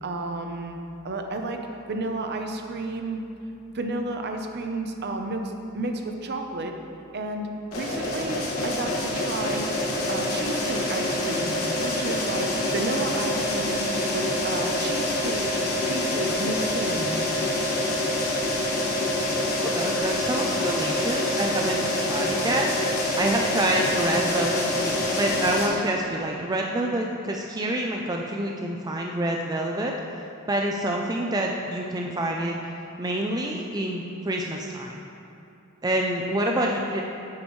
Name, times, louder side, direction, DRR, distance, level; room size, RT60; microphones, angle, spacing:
voice 1, 0.0-0.8 1.0-1.6 1.9-3.2 3.7-5.4 5.7-6.7 7.1-7.5 7.7-9.6 10.1-12.5 12.7-13.8 14.1-17.1, right 2 dB, 50° right, 4 dB, 0.7 m, -31 dB
sound 1, 7.7-25.7, left 1 dB, 80° left, 1.9 m, -26 dB
voice 2, 19.6-32.6 33.0-35.0 35.8-37.0, right 1 dB, 15° right, 0 dB, 0.4 m, -27 dB
10.5 x 8.5 x 3.1 m, 2.7 s
head